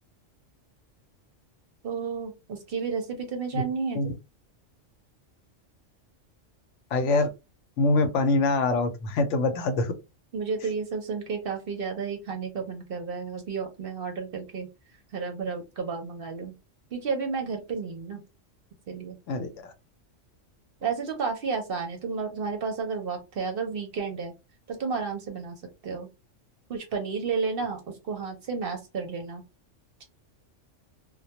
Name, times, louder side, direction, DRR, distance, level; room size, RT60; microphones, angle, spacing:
voice 1, 1.8-4.0 10.3-14.7 15.1-16.5 16.9-18.2 18.9-19.2 20.8-24.3 24.7-25.6 25.8-26.1 26.7-29.4, right 5 dB, 55° right, 0.7 m, -32 dB
voice 2, 6.9-7.3 7.8-9.9 19.3-19.7, left 3 dB, 75° left, 0.9 m, -24 dB
2.2 x 2.1 x 2.8 m
omnidirectional pair, 1.3 m